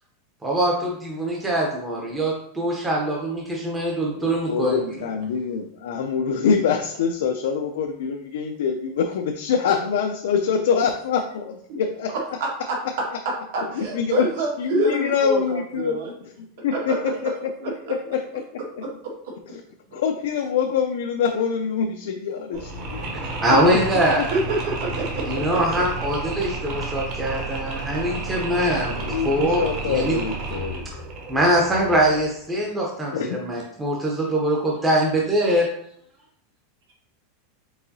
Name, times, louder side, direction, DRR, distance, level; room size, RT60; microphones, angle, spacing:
voice 1, 0.4-5.0 23.4-24.2 25.3-30.2 31.3-35.7, right 1 dB, 10° right, -2 dB, 0.6 m, -23 dB
voice 2, 4.1-12.1 13.7-14.3 14.6-16.0 16.4-17.3 17.9-18.2 18.8-18.9 19.9-23.4 24.1-24.3 29.0-30.9 33.1-33.7, left 6 dB, 85° left, 4 dB, 0.4 m, -25 dB
voice 3, 12.4-12.8 13.5-16.1 16.7-17.0 17.6-18.0 18.8-19.3 22.5-22.6 23.7-23.8 24.3-25.8, right 2 dB, 70° right, -2 dB, 1.6 m, -27 dB
Mechanisms, 22.5-32.3, right 2 dB, 45° right, 1.0 m, -31 dB
4.7 x 3.7 x 2.7 m, 0.68 s
supercardioid pair, 165°, 0 cm